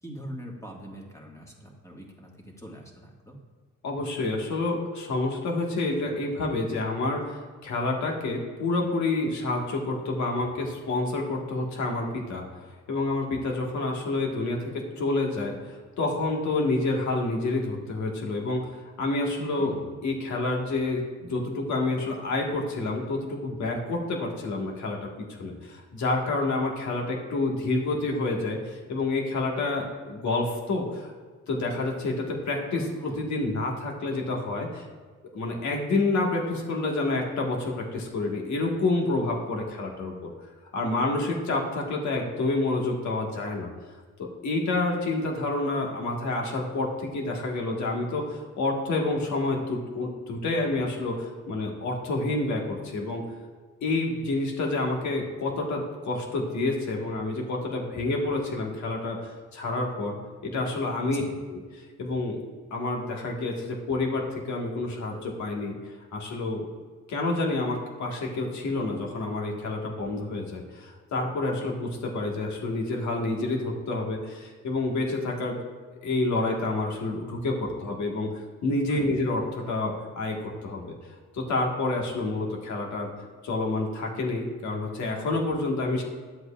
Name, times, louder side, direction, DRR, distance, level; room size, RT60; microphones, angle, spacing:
voice 1, 0.0-3.4 19.6-19.9 32.7-33.2 61.0-61.3 78.9-79.1, right 1 dB, 10° left, -1 dB, 1.7 m, -41 dB
voice 2, 3.8-12.4 12.9-18.6 19.0-19.7 20.0-25.1 25.4-31.1 31.5-34.8 35.3-40.3 40.7-43.7 44.2-53.2 53.8-60.2 60.4-61.2 61.5-62.4 62.7-65.8 66.1-66.6 67.1-75.6 76.0-78.3 78.6-80.9 81.3-83.1 83.4-86.0, left 2 dB, 70° left, 0 dB, 1.6 m, -28 dB
10.5 x 7.8 x 2.4 m, 1.5 s
cardioid pair, 90°, 30 cm